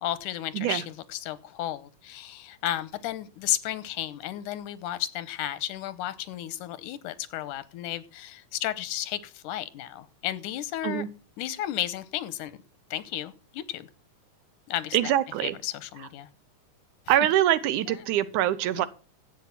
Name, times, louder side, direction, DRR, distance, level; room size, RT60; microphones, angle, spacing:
voice 1, 0.0-11.1 11.4-12.6 12.9-13.9 14.7-15.0 15.4-16.3 18.8-18.9, left 12 dB, 85° left, 2.3 m, -33 dB
voice 2, 14.9-15.6 17.1-18.9, right 12 dB, 80° right, 2.3 m, -24 dB
12.0 x 8.3 x 5.8 m
omnidirectional pair, 3.5 m